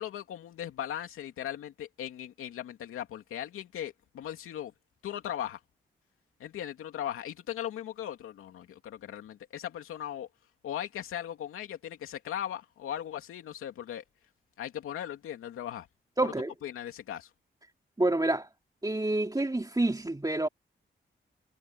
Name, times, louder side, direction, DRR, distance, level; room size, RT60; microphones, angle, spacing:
voice 1, 0.0-4.7 5.0-5.6 6.4-10.3 10.6-14.0 14.6-15.9 16.2-16.3 16.6-17.3, left 10 dB, 85° left, 2.8 m, -38 dB
voice 2, 16.2-16.5 18.0-18.5 18.8-20.5, right 2 dB, 20° right, 2.8 m, -28 dB
supercardioid pair, 50°, 21 cm